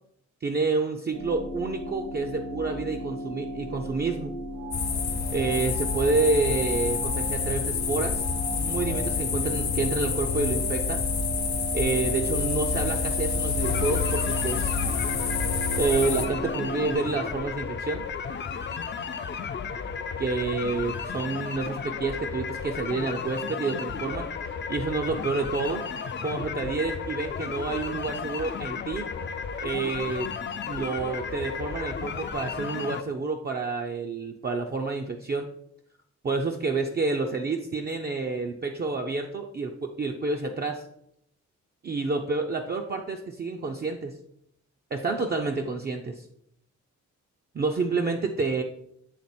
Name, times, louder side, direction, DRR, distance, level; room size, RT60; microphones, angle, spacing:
voice 1, 0.4-4.3 5.3-8.2 8.5-11.0 11.7-14.7 15.8-18.0 20.2-24.3 24.7-25.8 26.2-29.1 29.6-30.3 30.7-35.5 36.2-40.8 41.8-44.2 44.9-46.2 47.5-48.6, right 3 dB, 35° right, 2 dB, 0.4 m, -29 dB
sound 1, 1.1-17.0, right 2 dB, 75° right, 1.0 m, -35 dB
sound 2, 4.7-16.3, left 6 dB, 65° left, 0.9 m, -28 dB
sound 3, 13.6-33.0, left 6 dB, 40° left, 0.4 m, -34 dB
7.5 x 3.4 x 4.2 m, 0.74 s
wide cardioid pair, 135°, 30 cm